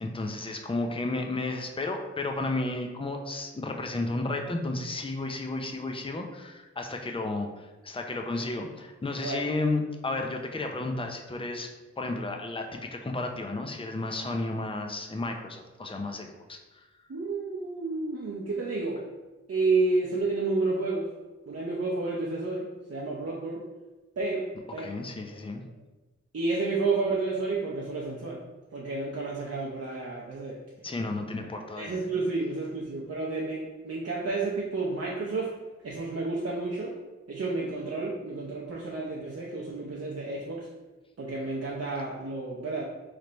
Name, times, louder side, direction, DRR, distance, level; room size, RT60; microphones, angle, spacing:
voice 1, 0.0-11.7 12.0-16.6 24.8-25.6 30.8-32.0, left 2 dB, 20° left, 4 dB, 0.5 m, -32 dB
voice 2, 17.1-19.0 19.5-21.1 21.5-23.6 24.2-24.9 26.3-28.4 28.7-30.6 31.8-35.5 35.8-37.0 37.3-40.7 41.2-42.8, right 3 dB, 55° right, -5 dB, 0.7 m, -30 dB
3.3 x 3.2 x 3.9 m, 1.2 s
cardioid pair, 45°, 29 cm